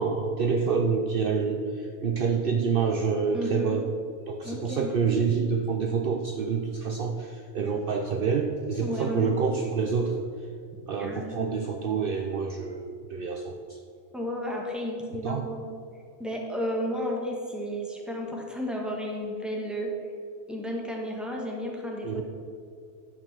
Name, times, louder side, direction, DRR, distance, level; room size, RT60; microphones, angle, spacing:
voice 1, 0.0-3.8 4.3-10.2 10.9-13.8 15.2-15.4 22.0-22.2, right 5 dB, 60° right, 4 dB, 0.8 m, -27 dB
voice 2, 3.3-3.8 4.4-4.9 8.8-9.3 11.0-11.6 14.1-15.6 16.2-19.9 20.5-22.2, equal, ahead, -1 dB, 1.4 m, -33 dB
11.0 x 5.2 x 6.0 m, 2.3 s
omnidirectional pair, 1.2 m